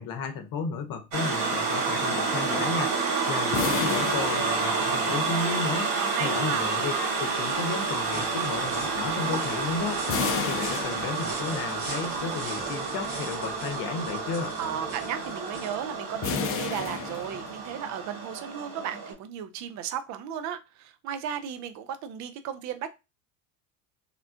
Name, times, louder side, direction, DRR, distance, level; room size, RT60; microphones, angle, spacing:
voice 1, 0.0-3.0 3.3-10.0 10.4-14.5, left 5 dB, 50° left, 0.9 m, -33 dB
sound 1, 1.1-19.1, right 4 dB, 65° right, 1.8 m, -29 dB
sound 2, 3.5-5.4 10.1-11.7 16.2-17.9, left 6 dB, 30° left, 0.5 m, -32 dB
voice 2, 5.9-6.7 14.6-22.9, right 9 dB, 40° right, 0.5 m, -35 dB
sound 3, 6.8-17.2, right 3 dB, 80° right, 1.3 m, -40 dB
3.6 x 2.4 x 2.4 m
hypercardioid pair, 85°, 43 cm